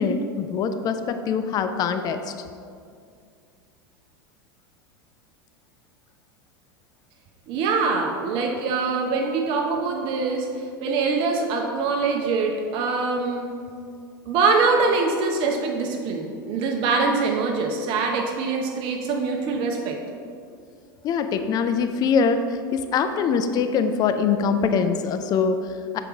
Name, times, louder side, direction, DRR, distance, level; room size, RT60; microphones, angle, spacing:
voice 1, 0.0-2.3 21.0-26.0, left 5 dB, 35° left, 9 dB, 0.4 m, -23 dB
voice 2, 7.5-13.5 14.3-20.0, right 4 dB, 50° right, 2 dB, 0.7 m, -24 dB
6.7 x 4.9 x 3.6 m, 2.3 s
hypercardioid pair, 85°, 12 cm